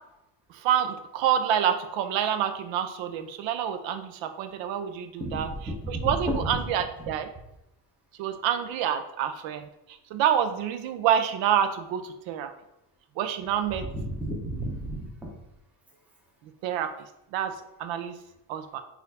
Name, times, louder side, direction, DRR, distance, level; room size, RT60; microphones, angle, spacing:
voice 1, 0.5-5.5 5.9-7.3 8.2-9.7 10.1-12.5 13.2-13.9 16.6-16.9 17.3-17.5 17.8-18.2 18.5-18.8, right 9 dB, 80° right, 8 dB, 0.6 m, -27 dB
voice 2, 5.2-6.5 7.0-7.1 13.9-15.1, right 1 dB, 5° right, -3 dB, 0.7 m, -32 dB
4.1 x 2.6 x 4.0 m, 0.84 s
cardioid pair, 165°, 46 cm